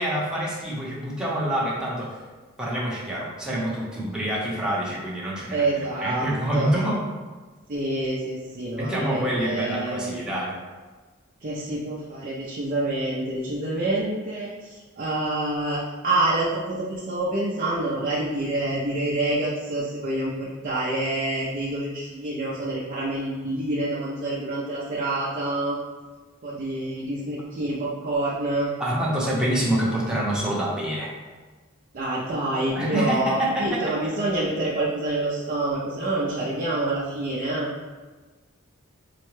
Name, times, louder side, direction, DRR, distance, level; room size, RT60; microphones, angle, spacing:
voice 1, 0.0-2.2 2.6-5.7 6.0-7.0 8.8-10.5 28.8-31.1 32.8-33.8, right 1 dB, 5° right, -6 dB, 0.8 m, -26 dB
voice 2, 5.5-6.7 7.7-10.1 11.4-25.8 26.4-28.7 31.9-37.7, right 2 dB, 40° right, -6 dB, 0.5 m, -27 dB
4.7 x 2.1 x 3.1 m, 1.3 s
head